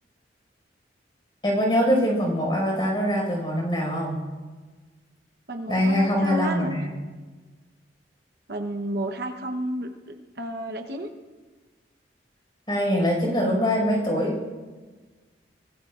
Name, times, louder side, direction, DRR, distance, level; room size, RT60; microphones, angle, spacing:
voice 1, 1.4-4.2 5.7-6.9 12.7-14.3, equal, 25° left, -1 dB, 5.4 m, -23 dB
voice 2, 5.5-6.8 8.5-11.1, equal, 60° right, 5 dB, 1.0 m, -32 dB
24.0 x 19.0 x 2.5 m, 1.3 s
head